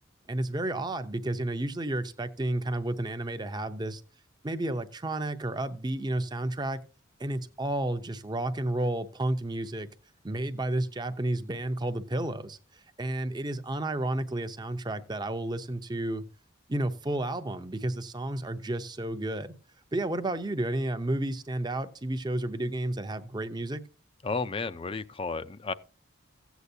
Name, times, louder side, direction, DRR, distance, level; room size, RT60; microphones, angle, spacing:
voice 1, 0.3-4.0 4.4-6.8 7.2-9.9 10.2-12.6 13.0-16.2 16.7-19.5 19.9-23.8, right 1 dB, 20° right, 0.7 m, -31 dB
voice 2, 24.2-25.7, left 4 dB, 25° left, 0.4 m, -32 dB
15.5 x 8.1 x 2.7 m
head